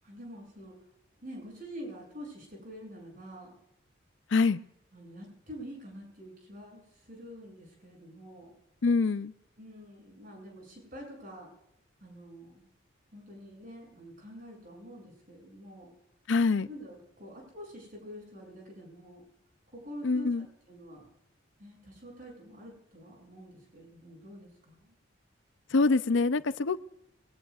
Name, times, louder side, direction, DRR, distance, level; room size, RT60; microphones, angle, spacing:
voice 1, 0.0-0.7 1.2-3.6 4.9-8.5 9.6-11.5 12.0-12.7 13.1-15.9 16.7-19.2 19.7-20.3 20.7-21.1 21.6-24.9, equal, 45° right, 0 dB, 7.5 m, -47 dB
voice 2, 4.3-4.6 8.8-9.3 16.3-16.7 20.0-20.4 25.7-26.8, left 3 dB, 65° left, 14 dB, 0.6 m, -25 dB
23.0 x 18.5 x 2.4 m, 0.87 s
head